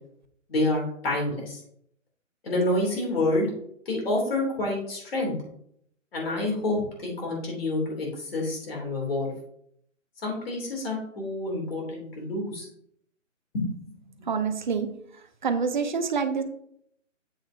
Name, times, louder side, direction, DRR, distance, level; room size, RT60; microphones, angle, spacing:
voice 1, 0.5-1.6 2.4-3.5 3.8-5.3 6.1-9.3 10.2-12.7 13.5-13.7 14.2-14.3, left 2 dB, 50° left, -1 dB, 3.3 m, -28 dB
voice 2, 14.3-14.9 15.4-16.4, right 5 dB, 35° right, 8 dB, 0.7 m, -26 dB
8.0 x 6.3 x 2.8 m, 0.70 s
figure-of-eight pair, 155°, 39 cm